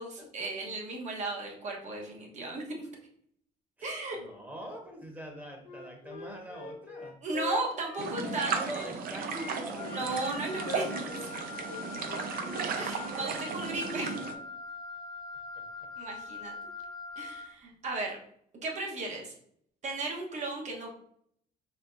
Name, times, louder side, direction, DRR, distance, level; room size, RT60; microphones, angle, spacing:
voice 1, 0.0-2.9 3.8-4.2 7.2-8.9 9.8-10.9 11.1-11.3 12.8-14.2 16.0-16.5 17.2-18.2 18.6-19.3 19.8-20.9, right 2 dB, 50° right, 0 dB, 1.2 m, -35 dB
voice 2, 3.8-7.1 8.3-10.1 12.3-12.4 13.5-13.6, right 1 dB, 10° right, 0 dB, 1.1 m, -43 dB
Wind instrument woodwind instrument, 5.6-8.9 9.3-12.7, left 6 dB, 65° left, 1.0 m, -43 dB
sound 1, 8.0-14.3, right 5 dB, 65° right, 0.6 m, -35 dB
Wind instrument woodwind instrument 2, 9.8-17.5, left 4 dB, 30° left, 0.4 m, -43 dB
4.4 x 3.6 x 2.6 m, 0.67 s
cardioid pair, 120°, 16 cm